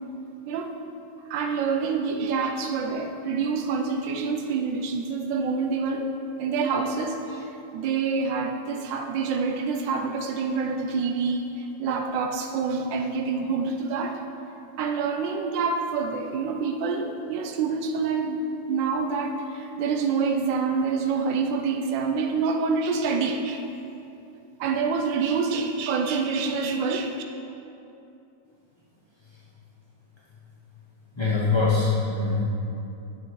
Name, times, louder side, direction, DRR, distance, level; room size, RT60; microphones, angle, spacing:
voice 1, 1.3-6.1 6.4-14.2 14.8-18.4 18.7-23.6 24.6-27.1, right 5 dB, 80° right, 4 dB, 1.4 m, -27 dB
voice 2, 31.2-32.4, left 4 dB, 20° left, -7 dB, 0.8 m, -23 dB
10.5 x 9.1 x 4.7 m, 2.8 s
omnidirectional pair, 2.0 m